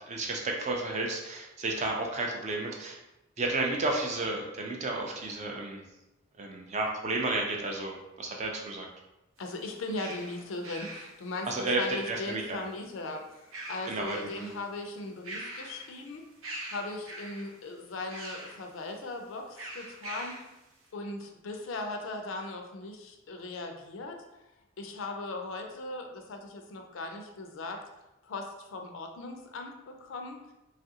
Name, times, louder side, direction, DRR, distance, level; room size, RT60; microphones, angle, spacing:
voice 1, 0.1-3.0 3.4-5.8 6.4-8.9 11.5-12.6 13.9-14.5, right 2 dB, 35° right, 1 dB, 0.4 m, -32 dB
voice 2, 9.4-16.2 16.7-20.4 20.9-24.2 24.8-27.8 28.2-30.4, left 2 dB, 70° left, 4 dB, 0.4 m, -38 dB
sound 1, 9.4-12.5 13.3-14.6 15.0-16.0 16.4-17.5 18.1-18.6 19.6-20.5, right 1 dB, 80° right, 0.7 m, -43 dB
3.2 x 2.4 x 2.7 m, 0.95 s
head